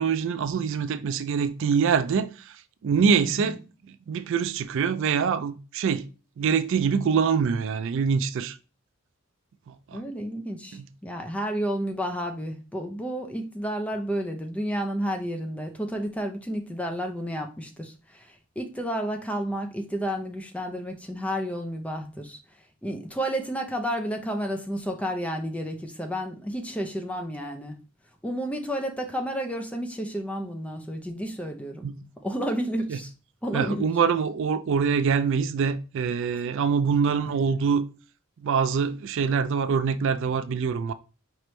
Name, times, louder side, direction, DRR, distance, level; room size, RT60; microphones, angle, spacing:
voice 1, 0.0-2.5 2.8-3.6 4.1-6.0 6.4-8.6 9.9-10.0 10.7-10.9 31.8-32.0 32.9-33.0 33.5-37.8 38.4-40.9, right 6 dB, 60° right, 0.3 m, -24 dB
voice 2, 3.2-3.6 9.9-22.4 22.8-27.8 28.2-31.9 32.2-33.1 33.4-33.9 37.2-37.4, equal, 5° left, 0.5 m, -31 dB
5.0 x 3.1 x 3.2 m
head